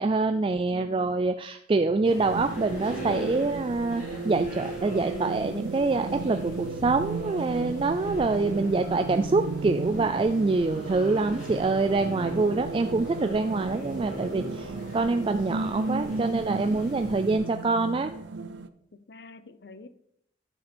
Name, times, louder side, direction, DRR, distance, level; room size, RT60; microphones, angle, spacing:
voice 1, 0.0-18.1, right 3 dB, 30° right, 0.3 m, -25 dB
voice 2, 0.7-1.2 18.9-19.9, left 3 dB, 65° left, 0.6 m, -48 dB
sound 1, 2.0-17.4, right 1 dB, 45° left, 4.2 m, -41 dB
sound 2, 2.3-18.7, right 3 dB, 85° right, 0.5 m, -35 dB
10.5 x 6.7 x 4.4 m
head